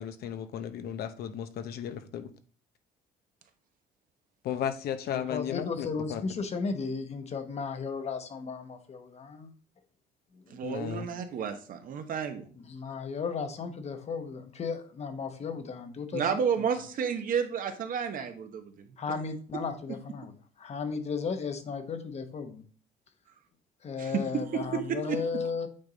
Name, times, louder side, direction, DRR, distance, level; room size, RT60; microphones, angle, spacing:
voice 1, 0.0-2.3 4.4-6.2 10.6-11.1, left 9 dB, 65° left, 9 dB, 0.8 m, -35 dB
voice 2, 5.1-9.5 10.3-10.4 12.7-16.3 19.0-20.3 20.6-22.6 23.8-25.7, left 5 dB, 40° left, 8 dB, 1.0 m, -35 dB
voice 3, 10.5-12.5 16.1-18.9 24.0-24.2 24.5-25.2, right 7 dB, 55° right, 7 dB, 1.0 m, -31 dB
8.7 x 3.5 x 4.0 m, 0.42 s
cardioid pair, 110°, 17 cm